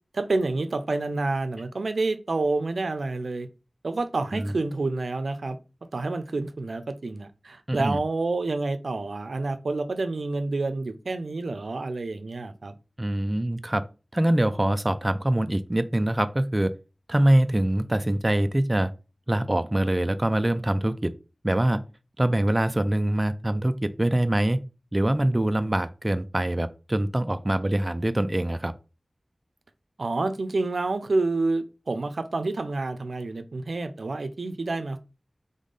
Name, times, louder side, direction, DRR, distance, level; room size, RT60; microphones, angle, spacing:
voice 1, 0.1-3.5 3.8-5.6 5.9-12.7 30.0-35.0, right 3 dB, 85° right, 0.5 m, -28 dB
voice 2, 7.7-8.0 13.0-13.8 14.1-16.7 17.1-18.9 19.3-21.1 21.4-21.8 22.2-24.6 24.9-28.7, right 1 dB, 25° right, 0.3 m, -24 dB
3.6 x 3.6 x 3.9 m
wide cardioid pair, 65°, 0 cm